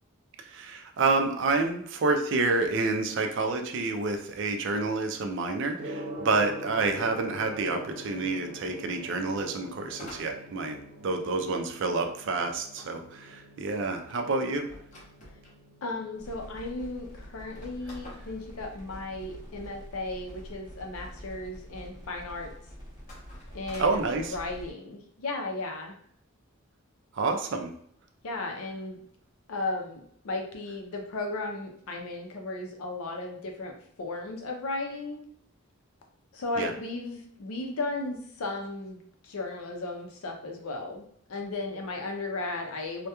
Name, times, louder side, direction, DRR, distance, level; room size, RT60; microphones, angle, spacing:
voice 1, 0.5-14.7 23.8-24.4 27.1-27.7 36.6-36.7, right 3 dB, 55° right, 5 dB, 0.3 m, -28 dB
Gong, 5.8-24.8, equal, 75° right, 0.7 m, -46 dB
sound 1, 9.9-11.5 12.8-15.6 16.3-16.4 16.6-16.7 17.4-19.5 23.0-24.1, left 1 dB, 35° left, 0.7 m, -50 dB
voice 2, 15.8-22.5 23.5-26.0 28.2-29.0 29.5-35.3 36.3-43.1, left 2 dB, 80° left, 3 dB, 0.5 m, -35 dB
sound 2, 16.2-24.7, equal, 20° right, 0.7 m, -46 dB
2.2 x 2.1 x 2.8 m, 0.64 s
head